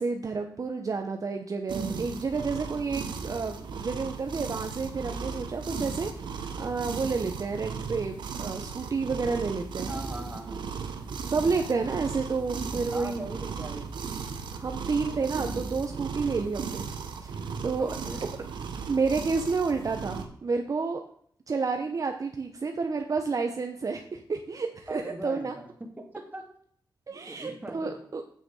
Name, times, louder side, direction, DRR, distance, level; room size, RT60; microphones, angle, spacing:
voice 1, 0.0-6.1 6.6-9.9 11.3-13.3 14.5-16.9 17.2-17.9 18.2-18.3 18.9-21.0 21.5-25.5 27.1-28.2, right 4 dB, 50° right, 5 dB, 0.9 m, -30 dB
sound 1, 1.7-20.3, right 5 dB, 85° right, 1.1 m, -36 dB
voice 2, 9.9-10.6 12.9-14.3 17.8-18.2 24.9-25.7 26.0-26.4 27.3-28.0, right 2 dB, 20° right, 3 dB, 2.2 m, -39 dB
8.6 x 6.6 x 5.5 m, 0.63 s
cardioid pair, 70°, 8 cm